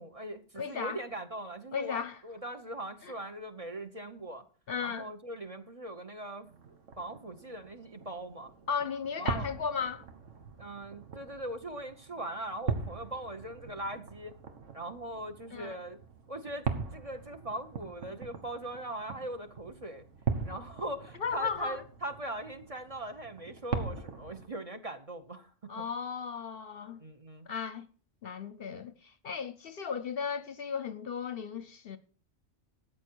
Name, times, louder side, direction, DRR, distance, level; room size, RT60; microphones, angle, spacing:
voice 1, 0.0-4.4 4.8-6.5 7.0-8.5 9.2-9.5 10.6-14.3 14.7-16.0 16.3-16.7 16.9-20.0 20.4-25.8 27.0-27.5, right 1 dB, 30° right, 0.9 m, -40 dB
voice 2, 0.6-1.0 1.7-2.2 3.0-3.1 4.7-5.1 8.7-10.0 15.5-15.8 21.2-21.8 25.7-27.0 27.5-27.9 28.2-32.0, left 6 dB, 60° left, 0.8 m, -35 dB
sound 1, 6.4-24.5, right 5 dB, 85° right, 1.7 m, -41 dB
13.5 x 8.7 x 4.6 m
omnidirectional pair, 1.2 m